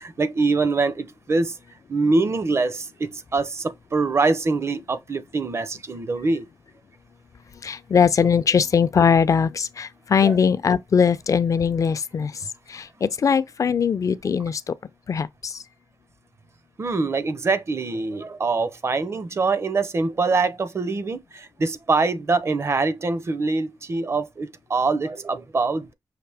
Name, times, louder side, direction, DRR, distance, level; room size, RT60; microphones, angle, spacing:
voice 1, 0.0-1.6 1.9-6.4 10.2-10.3 16.8-25.9, right 3 dB, 40° right, 0.6 m, -24 dB
voice 2, 7.6-14.8 15.1-15.6, left 6 dB, 50° left, 0.4 m, -21 dB
5.8 x 2.5 x 3.4 m
wide cardioid pair, 100°, 7 cm